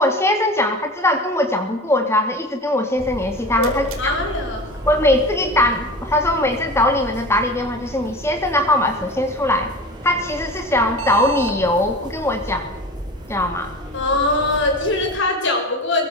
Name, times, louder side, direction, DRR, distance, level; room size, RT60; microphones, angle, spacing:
voice 1, 0.0-4.2 4.9-9.7 10.0-12.8 13.3-13.7, left 1 dB, 15° left, 5 dB, 3.2 m, -20 dB
sound 1, 3.0-15.2, equal, 20° right, 5.3 m, -33 dB
Switch on PC, 3.2-11.6, right 3 dB, 80° right, 4.3 m, -39 dB
voice 2, 3.6-4.7 13.9-16.1, left 2 dB, 60° left, 3 dB, 6.7 m, -22 dB
23.0 x 23.0 x 7.4 m, 0.93 s
head